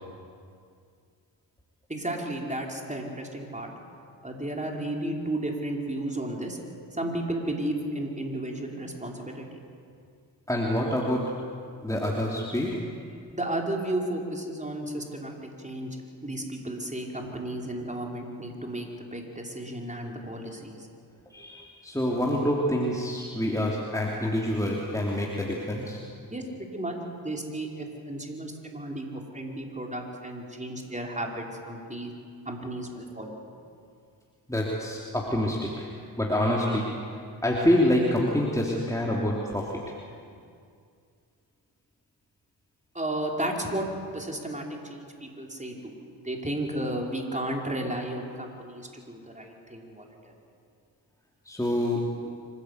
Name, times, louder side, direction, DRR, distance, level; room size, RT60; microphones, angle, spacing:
voice 1, 1.9-3.7 4.2-6.6 7.0-9.4 13.3-15.9 16.2-20.9 26.3-26.4 26.7-26.9 27.2-32.1 32.4-33.3 42.9-45.9 46.2-50.3, right 1 dB, 15° right, 0 dB, 4.9 m, -33 dB
voice 2, 10.5-11.6 11.8-12.9 21.3-26.0 34.5-35.9 36.2-37.0 37.4-39.9 51.5-52.4, left 1 dB, 5° left, -3 dB, 3.4 m, -27 dB
25.5 x 16.5 x 8.3 m, 2.3 s
supercardioid pair, 45°, 48 cm